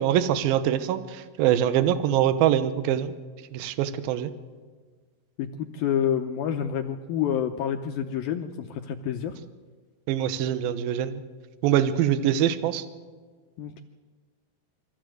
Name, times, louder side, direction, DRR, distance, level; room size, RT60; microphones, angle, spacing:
voice 1, 0.0-3.1 3.5-4.3 10.1-11.2 11.6-12.8, right 10 dB, 70° right, 11 dB, 2.5 m, -24 dB
voice 2, 5.4-9.4 13.6-13.8, left 9 dB, 75° left, 5 dB, 2.2 m, -28 dB
24.0 x 14.5 x 7.8 m, 1.5 s
omnidirectional pair, 5.0 m